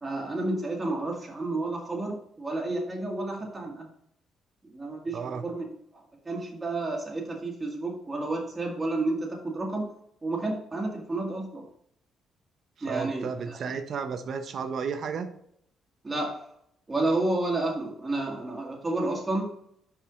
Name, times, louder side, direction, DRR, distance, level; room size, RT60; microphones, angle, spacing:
voice 1, 0.0-3.9 4.7-9.9 10.2-11.7 12.8-13.7 16.0-16.4 16.9-19.5, right 2 dB, 25° right, -2 dB, 1.7 m, -31 dB
voice 2, 5.1-5.4 12.8-15.3, right 6 dB, 60° right, 8 dB, 0.9 m, -33 dB
5.8 x 4.8 x 3.7 m, 0.69 s
cardioid pair, 90°, 0 cm